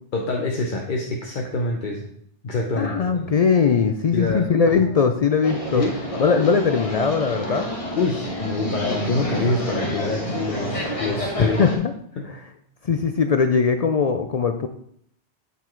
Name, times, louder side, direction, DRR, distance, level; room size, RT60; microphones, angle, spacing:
voice 1, 0.1-2.1 2.4-3.2 4.1-4.5 5.8-5.9 8.0-11.7 12.2-12.3, left 3 dB, 50° left, 0 dB, 0.9 m, -26 dB
voice 2, 2.8-5.8 6.2-7.7 11.4-11.9 12.3-12.4 12.8-14.7, left 5 dB, 70° left, 7 dB, 0.3 m, -20 dB
sound 1, 5.4-11.8, equal, 30° left, 1.3 m, -29 dB
8.3 x 4.1 x 4.4 m, 0.67 s
omnidirectional pair, 1.2 m